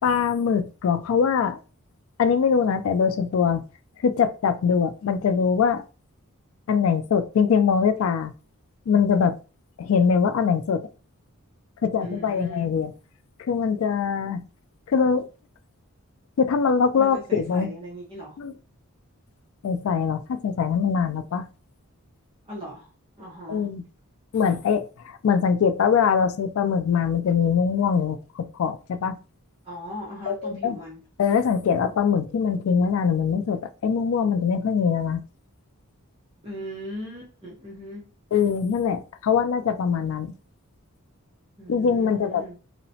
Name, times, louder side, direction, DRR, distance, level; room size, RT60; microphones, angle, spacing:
voice 1, 0.0-1.6 2.2-3.6 4.0-5.8 6.7-8.3 8.9-9.4 9.8-10.9 11.8-12.9 13.4-14.4 14.9-15.3 16.4-17.7 18.4-18.5 19.6-21.5 23.5-23.8 24.3-29.2 30.3-30.8 31.2-35.2 38.3-40.3 41.7-42.4, left 6 dB, 65° left, 0.3 m, -22 dB
voice 2, 12.0-12.8 17.0-18.4 22.5-22.9 23.2-23.7 29.6-31.0 36.4-38.1 41.6-42.6, equal, 25° right, 0.6 m, -38 dB
2.8 x 2.1 x 2.7 m
head